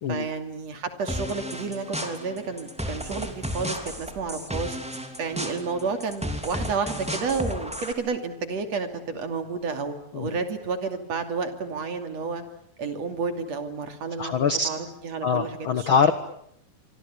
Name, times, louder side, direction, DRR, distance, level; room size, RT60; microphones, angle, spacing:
voice 1, 0.1-4.8 5.2-12.4 12.8-14.8 15.0-15.9, right 4 dB, 50° right, 7 dB, 3.5 m, -31 dB
sound 1, 1.1-7.9, equal, ahead, 2.7 m, -33 dB
voice 2, 14.2-14.7 15.2-16.1, left 5 dB, 65° left, 11 dB, 1.2 m, -23 dB
26.0 x 25.5 x 8.8 m, 0.72 s
omnidirectional pair, 4.1 m